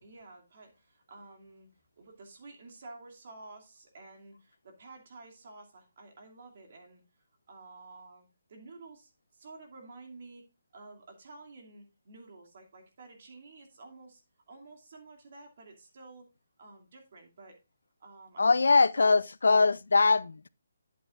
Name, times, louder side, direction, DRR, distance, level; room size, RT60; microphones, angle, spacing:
voice 1, 0.0-1.7 2.0-7.0 7.5-14.2 14.5-16.3 16.6-17.6 18.0-19.2, right 3 dB, 45° right, 2.7 m, -51 dB
voice 2, 18.4-20.5, left 4 dB, 90° left, 0.5 m, -22 dB
11.0 x 8.4 x 2.5 m
hypercardioid pair, 170°, 0 cm